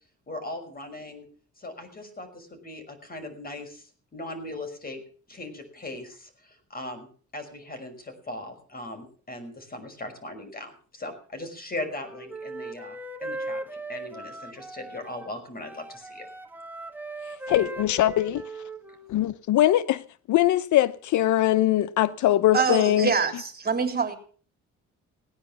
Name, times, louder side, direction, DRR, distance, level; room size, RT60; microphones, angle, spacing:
voice 1, 0.3-1.3 1.6-5.0 5.3-7.1 7.3-13.6 13.9-16.3, left 2 dB, 30° left, 5.8 m, -39 dB
Wind instrument woodwind instrument, 11.8-15.3 15.6-19.1, right 2 dB, 5° right, 1.9 m, -39 dB
voice 2, 17.5-18.4 19.1-20.0 20.3-23.1, left 13 dB, 75° left, 0.7 m, -21 dB
voice 3, 22.5-24.2, right 5 dB, 30° right, 3.5 m, -25 dB
17.5 x 10.0 x 7.3 m
cardioid pair, 90°, 30 cm